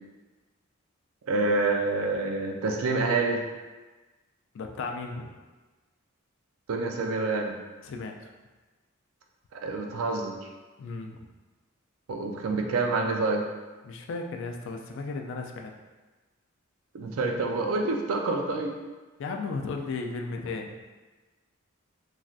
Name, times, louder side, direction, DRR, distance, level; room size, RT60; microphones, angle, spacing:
voice 1, 1.2-3.4 6.7-7.6 9.5-10.4 12.1-13.4 16.9-18.8, right 3 dB, 80° right, 2 dB, 0.4 m, -27 dB
voice 2, 4.5-5.3 7.8-8.1 10.8-11.2 13.8-15.7 19.2-20.7, left 3 dB, 60° left, 3 dB, 0.3 m, -35 dB
3.1 x 2.5 x 2.4 m, 1.3 s
head